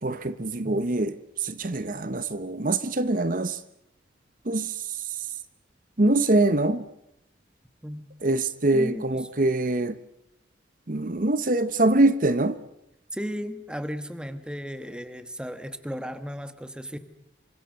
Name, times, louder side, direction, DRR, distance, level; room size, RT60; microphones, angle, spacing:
voice 1, 0.0-3.6 4.4-5.3 6.0-6.9 8.2-10.0 10.9-12.6, right 2 dB, 45° right, 0.9 m, -24 dB
voice 2, 8.7-9.0 13.1-17.0, equal, 5° right, 1.3 m, -35 dB
27.5 x 25.0 x 6.5 m
head